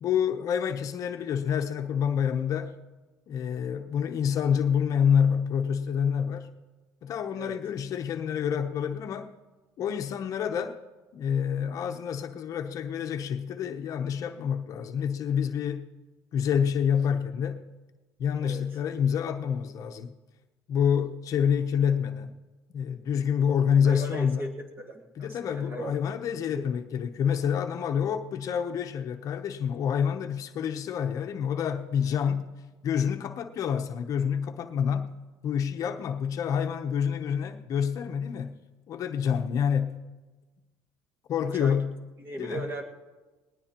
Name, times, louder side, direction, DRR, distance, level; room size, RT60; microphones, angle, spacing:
voice 1, 0.0-2.7 3.3-6.5 7.0-9.3 9.8-10.8 11.1-15.9 16.3-17.6 18.2-20.1 20.7-22.4 22.7-24.5 25.2-32.5 32.8-35.1 35.4-38.6 38.9-40.0 41.3-41.9 42.4-42.7, left 8 dB, 50° left, 0.8 m, -27 dB
voice 2, 23.8-26.0 26.5-26.6 35.8-35.9 41.6-41.8 42.2-42.8, right 2 dB, 30° right, 1.9 m, -37 dB
19.5 x 19.0 x 3.0 m
cardioid pair, 130°, 8 cm